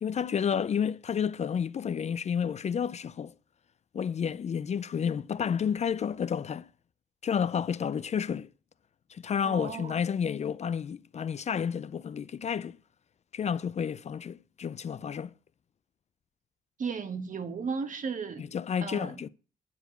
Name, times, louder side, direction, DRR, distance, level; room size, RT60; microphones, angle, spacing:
voice 1, 0.0-3.3 3.9-6.7 7.2-8.5 9.1-12.8 13.3-15.3 18.4-19.3, left 7 dB, 45° left, 0.5 m, -30 dB
voice 2, 9.4-10.0 16.8-18.4 18.8-19.1, right 5 dB, 55° right, 1.4 m, -35 dB
10.0 x 4.6 x 6.6 m
cardioid pair, 65°, 16 cm